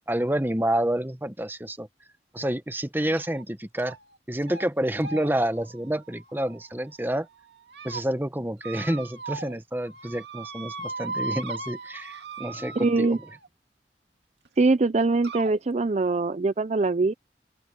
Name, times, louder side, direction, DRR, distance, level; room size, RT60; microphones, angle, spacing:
voice 1, 0.1-1.9 2.3-4.0 4.3-7.3 7.8-13.2, right 1 dB, 10° right, 1.1 m, -28 dB
sound 1, 3.2-3.4 3.8-4.2 4.4-4.6 5.0-6.9 7.5-8.0 8.6-9.6 9.9-13.5 14.4-14.5 15.2-15.6, right 3 dB, 80° right, 2.0 m, -38 dB
voice 2, 12.8-13.2 14.6-17.1, right 3 dB, 40° right, 0.5 m, -23 dB
open air
head